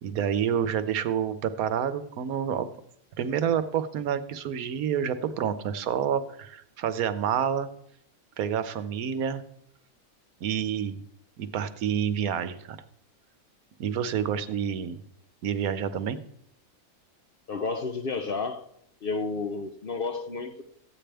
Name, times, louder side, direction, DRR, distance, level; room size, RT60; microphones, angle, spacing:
voice 1, 0.0-2.7 3.2-7.7 8.4-9.4 10.4-11.0 11.4-12.8 13.8-15.0 15.4-16.2, right 8 dB, 85° right, 1.2 m, -28 dB
voice 2, 17.5-18.7 19.0-20.6, left 4 dB, 55° left, 0.7 m, -31 dB
14.5 x 8.8 x 3.4 m
omnidirectional pair, 1.5 m